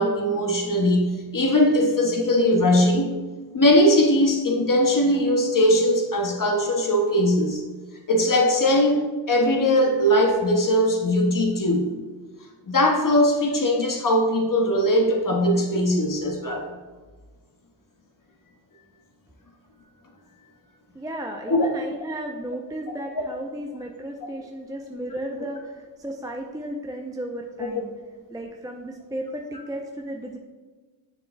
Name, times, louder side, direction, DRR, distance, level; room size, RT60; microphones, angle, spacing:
voice 1, 0.0-3.1 3.5-7.6 8.1-11.9 12.6-16.6 21.5-21.7 27.6-27.7, left 1 dB, 40° left, 1 dB, 1.4 m, -20 dB
voice 2, 20.9-27.9 28.3-30.4, right 1 dB, 5° right, 1 dB, 0.6 m, -34 dB
6.8 x 6.6 x 2.3 m, 1.3 s
supercardioid pair, 40°, 49 cm